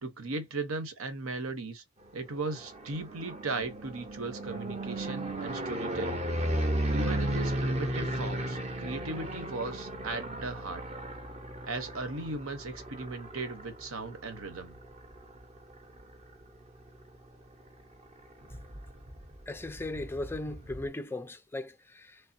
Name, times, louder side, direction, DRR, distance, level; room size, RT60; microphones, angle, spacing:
voice 1, 0.0-1.8 2.1-6.3 6.9-10.8 11.7-14.8, right 3 dB, 85° right, 0.9 m, -37 dB
sound 1, 2.2-16.2 16.7-17.2 17.4-17.5 17.8-20.9, right 1 dB, 30° right, 0.7 m, -35 dB
voice 2, 19.5-22.2, left 2 dB, 10° left, 0.3 m, -37 dB
3.4 x 3.3 x 2.7 m
head